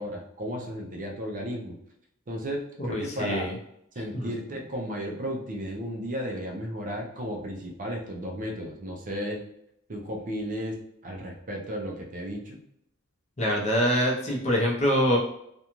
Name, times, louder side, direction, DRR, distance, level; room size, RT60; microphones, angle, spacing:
voice 1, 0.0-1.8 2.3-3.5 4.0-9.4 9.9-12.6, equal, 40° right, 0 dB, 0.5 m, -34 dB
voice 2, 2.9-3.5 4.1-4.3 13.4-15.2, equal, 30° left, -2 dB, 0.6 m, -24 dB
2.5 x 2.2 x 2.9 m, 0.75 s
head